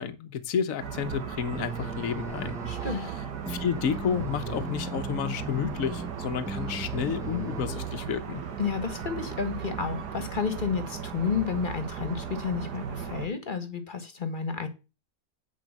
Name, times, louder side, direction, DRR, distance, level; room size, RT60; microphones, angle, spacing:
voice 1, 0.0-2.6 2.9-3.1 3.5-8.4, left 7 dB, 55° left, 1.4 m, -31 dB
sound 1, 0.8-13.3, right 8 dB, 75° right, 1.8 m, -36 dB
sound 2, 1.5-7.9, right 1 dB, 5° right, 0.5 m, -38 dB
voice 2, 2.7-3.0 8.6-14.7, left 6 dB, 30° left, 1.6 m, -31 dB
9.4 x 5.2 x 7.3 m
omnidirectional pair, 1.8 m